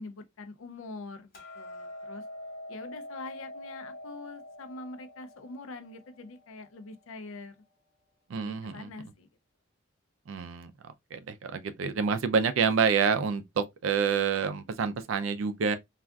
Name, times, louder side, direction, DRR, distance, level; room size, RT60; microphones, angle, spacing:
voice 1, 0.0-2.2 2.7-7.6 8.3-9.3, left 3 dB, 75° left, 0.5 m, -44 dB
Hammer, 1.3-7.6, left 1 dB, 45° left, 1.1 m, -45 dB
voice 2, 8.3-8.9 10.3-10.7 11.1-15.8, right 6 dB, 70° right, 0.4 m, -28 dB
3.4 x 2.4 x 2.2 m
head